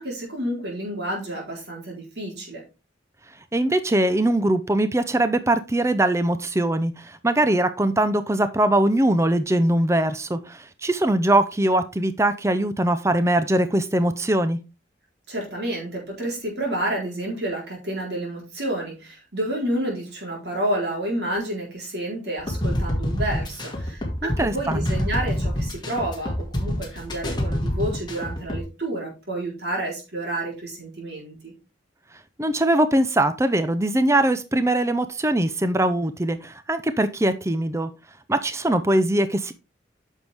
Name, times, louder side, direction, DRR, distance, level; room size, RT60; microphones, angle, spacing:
voice 1, 0.0-2.6 15.3-31.5, right 1 dB, 55° right, -1 dB, 4.0 m, -30 dB
voice 2, 3.5-14.6 24.2-24.9 32.4-37.9 38.3-39.5, right 1 dB, 15° right, 11 dB, 0.6 m, -21 dB
sound 1, 22.4-28.6, left 1 dB, 20° left, 2.1 m, -27 dB
9.4 x 6.4 x 3.5 m, 0.28 s
head